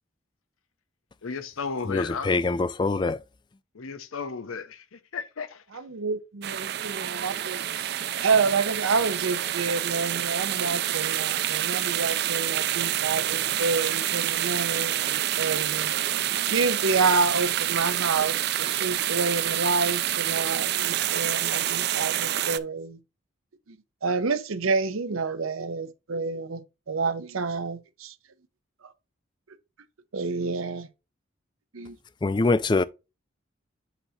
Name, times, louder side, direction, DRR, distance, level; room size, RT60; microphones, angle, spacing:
voice 1, 1.2-2.3 3.7-5.6, left 5 dB, 85° left, 0.7 m, -34 dB
voice 2, 1.9-3.2 32.2-32.8, left 3 dB, 20° left, 0.3 m, -24 dB
voice 3, 5.7-15.0 15.4-15.9 16.5-23.0 24.0-26.6 26.9-28.1 30.1-30.9 31.7-32.0, right 4 dB, 85° right, 0.7 m, -28 dB
sound 1, 6.4-22.6, right 12 dB, 50° right, 0.4 m, -27 dB
8.0 x 2.8 x 5.6 m
head